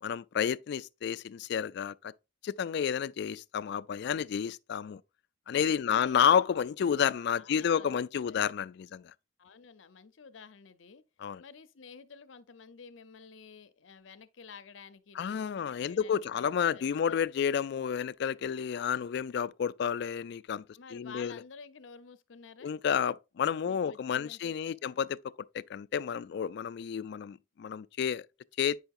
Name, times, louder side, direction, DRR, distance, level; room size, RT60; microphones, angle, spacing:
voice 1, 0.0-2.1 2.4-5.0 5.5-9.1 11.2-11.4 15.2-20.6 20.9-21.4 22.6-25.2 25.5-28.3 28.6-28.8, left 8 dB, 60° left, 0.3 m, -30 dB
voice 2, 5.8-6.1 7.4-7.9 8.3-8.4 9.4-11.0 11.4-16.5 16.7-17.2 20.7-22.7 23.6-25.0, left 5 dB, 85° left, 0.7 m, -51 dB
8.8 x 5.7 x 2.5 m
head